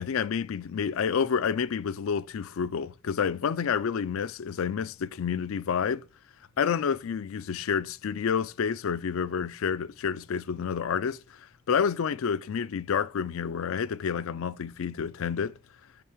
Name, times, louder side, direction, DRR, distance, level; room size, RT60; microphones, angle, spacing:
voice 1, 0.0-6.0 6.6-11.4 11.7-15.6, left 7 dB, 65° left, 0.4 m, -29 dB
5.7 x 4.5 x 4.9 m
head